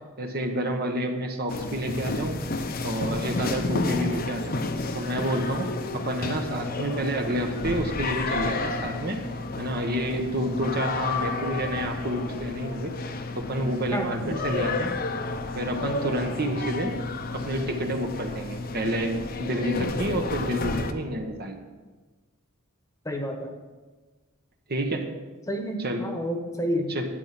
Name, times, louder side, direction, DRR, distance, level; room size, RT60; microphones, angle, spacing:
voice 1, 0.2-2.4 2.8-4.5 4.9-5.7 5.9-9.2 9.6-12.9 13.3-14.9 15.5-16.9 17.3-19.1 19.4-21.6 24.7-25.1 25.8-26.0 26.9-27.1, right 1 dB, 45° right, 4 dB, 1.3 m, -29 dB
sound 1, 1.5-20.9, left 3 dB, 45° left, 0.8 m, -31 dB
voice 2, 13.9-14.4 23.0-23.5 25.5-27.0, equal, 15° left, 4 dB, 1.2 m, -30 dB
12.0 x 9.1 x 6.0 m, 1.3 s
head